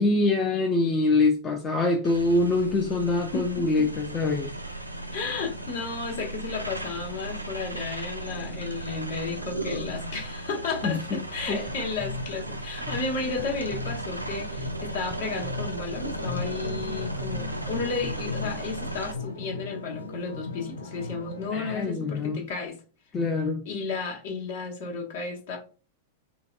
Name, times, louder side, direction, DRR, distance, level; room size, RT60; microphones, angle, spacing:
voice 1, 0.0-4.5 10.8-11.2 11.5-11.6 21.5-22.4 23.1-23.6, left 3 dB, 25° left, 0.5 m, -24 dB
sound 1, 2.0-19.1, right 2 dB, 90° right, 0.4 m, -36 dB
voice 2, 5.1-22.8 23.6-25.6, left 4 dB, 55° left, 1.0 m, -33 dB
sound 2, 11.7-18.5, left 2 dB, 25° right, 0.6 m, -39 dB
sound 3, 16.1-21.9, left 3 dB, 80° left, 0.5 m, -37 dB
3.9 x 2.2 x 2.5 m
figure-of-eight pair, 95°, 0 cm